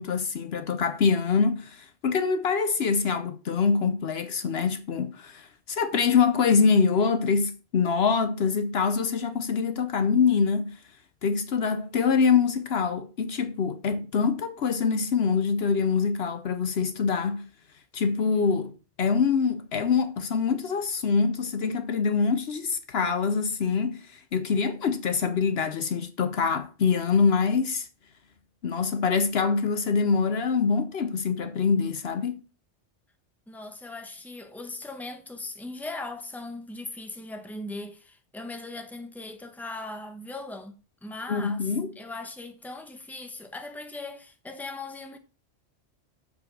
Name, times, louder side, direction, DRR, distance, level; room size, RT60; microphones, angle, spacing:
voice 1, 0.0-10.8 11.2-17.5 17.9-18.7 19.0-27.9 28.6-32.4 41.3-41.9, left 5 dB, 65° left, 1.0 m, -25 dB
voice 2, 33.5-45.2, left 2 dB, ahead, 1.0 m, -39 dB
7.2 x 5.1 x 6.1 m
omnidirectional pair, 1.2 m